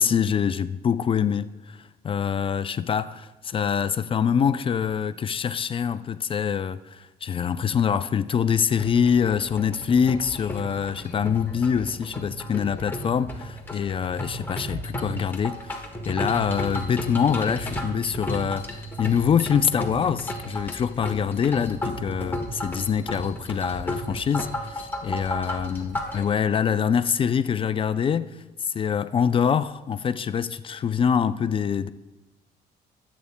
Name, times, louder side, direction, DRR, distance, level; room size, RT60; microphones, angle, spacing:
voice 1, 0.0-31.9, left 7 dB, 30° left, 0.4 m, -25 dB
sound 1, 8.8-26.3, equal, 10° left, 1.3 m, -33 dB
23.5 x 8.4 x 2.2 m
cardioid pair, 110°, 17 cm